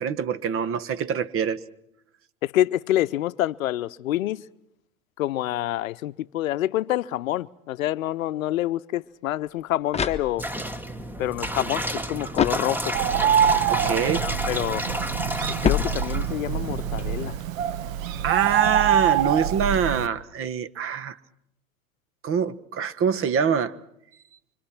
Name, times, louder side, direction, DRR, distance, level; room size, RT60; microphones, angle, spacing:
voice 1, 0.0-1.6 13.7-14.2 18.2-21.2 22.2-23.8, right 7 dB, 30° right, 1.4 m, -25 dB
voice 2, 2.4-4.4 5.2-10.4 11.2-13.0 14.0-14.8 15.6-17.3, left 14 dB, 65° left, 0.8 m, -27 dB
sound 1, 9.4-10.8 12.3-13.2 15.6-16.5, left 6 dB, 15° left, 1.4 m, -28 dB
sound 2, 10.4-17.3, right 1 dB, 5° right, 1.4 m, -31 dB
Bird, 12.9-20.1, right 10 dB, 65° right, 1.4 m, -25 dB
25.5 x 25.5 x 5.9 m
hypercardioid pair, 100°, 43 cm